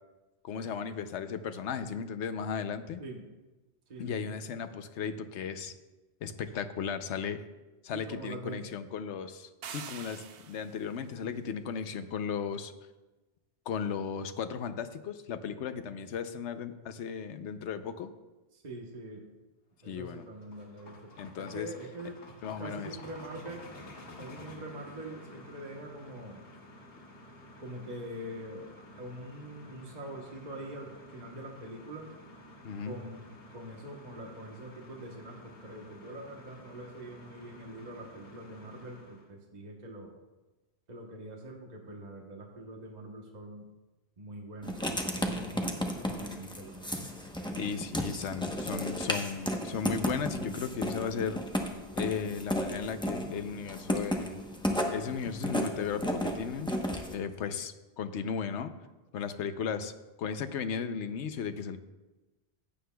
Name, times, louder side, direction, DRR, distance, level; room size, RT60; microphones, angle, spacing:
voice 1, 0.4-3.0 4.0-5.7 6.2-7.4 7.8-12.7 13.7-18.1 19.9-20.2 21.2-21.7 22.4-22.9 32.6-33.0 47.6-51.4 52.0-54.4 54.9-56.7 57.1-58.7 59.1-59.9 60.2-61.8, left 6 dB, 90° left, 10 dB, 1.0 m, -35 dB
voice 2, 3.9-4.3 7.9-8.6 18.5-19.4 19.8-21.1 21.4-22.2 22.6-26.4 27.6-32.1 32.8-40.1 40.9-43.7 44.2-47.1, right 1 dB, 40° right, 0 dB, 1.2 m, -44 dB
sound 1, 9.6-10.9, right 7 dB, 65° right, 0.8 m, -44 dB
sound 2, 19.9-39.3, left 1 dB, 60° left, 1.4 m, -52 dB
Writing, 44.6-57.1, equal, 5° left, 0.8 m, -34 dB
15.0 x 9.5 x 2.3 m, 1.1 s
omnidirectional pair, 1.1 m